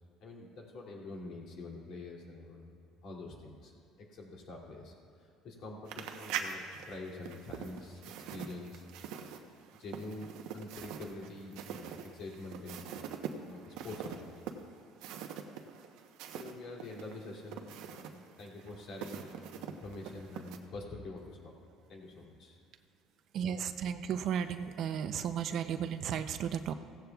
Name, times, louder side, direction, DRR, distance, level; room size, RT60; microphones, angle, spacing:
voice 1, 0.2-2.7 3.0-3.7 4.0-8.8 9.7-13.0 13.4-14.4 16.3-21.5 21.9-22.6, left 2 dB, 60° left, -2 dB, 2.6 m, -46 dB
sound 1, 5.9-16.5 16.8-20.6, right 8 dB, 80° right, 0.8 m, -43 dB
voice 2, 23.3-26.7, right 8 dB, 55° right, 9 dB, 0.5 m, -34 dB
16.5 x 15.0 x 2.3 m, 2.5 s
cardioid pair, 125°, 0 cm